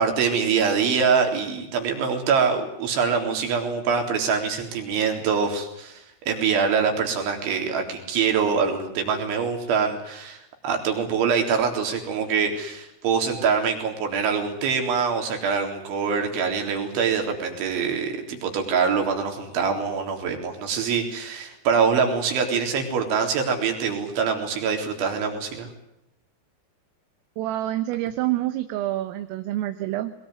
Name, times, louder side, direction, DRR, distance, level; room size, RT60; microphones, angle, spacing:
voice 1, 0.0-25.7, right 6 dB, 65° right, 4 dB, 6.0 m, -24 dB
voice 2, 27.4-30.1, right 14 dB, 80° right, 8 dB, 3.8 m, -27 dB
22.0 x 21.0 x 9.6 m, 0.84 s
omnidirectional pair, 5.9 m